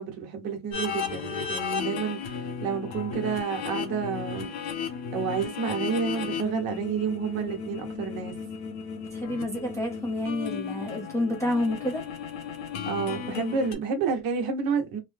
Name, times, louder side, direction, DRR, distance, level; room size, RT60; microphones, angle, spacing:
voice 1, 0.0-2.2 2.6-4.5 5.1-8.3 12.9-15.0, right 6 dB, 60° right, 1.1 m, -29 dB
sound 1, 0.7-13.8, left 6 dB, 85° left, 1.1 m, -35 dB
voice 2, 9.1-12.0, left 1 dB, 5° left, 0.6 m, -29 dB
3.1 x 2.1 x 3.3 m
cardioid pair, 175°, 40 cm